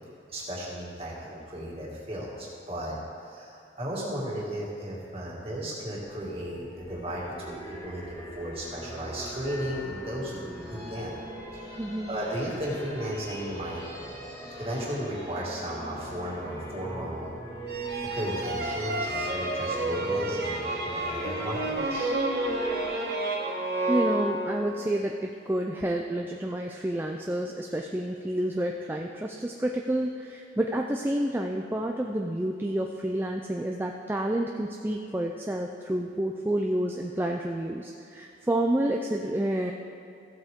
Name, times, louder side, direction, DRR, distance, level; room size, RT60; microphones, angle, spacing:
voice 1, 0.3-11.2 11.6-11.8 12.1-13.8 14.6-17.3 18.1-22.1, equal, 30° right, -5 dB, 2.2 m, -35 dB
sound 1, 6.0-22.8, right 1 dB, 20° left, 1.6 m, -41 dB
voice 2, 11.8-12.1 23.9-39.7, right 1 dB, 10° right, 1 dB, 0.3 m, -29 dB
sound 2, 17.7-24.9, right 2 dB, 55° right, 1.4 m, -30 dB
15.0 x 7.9 x 3.7 m, 2.6 s
head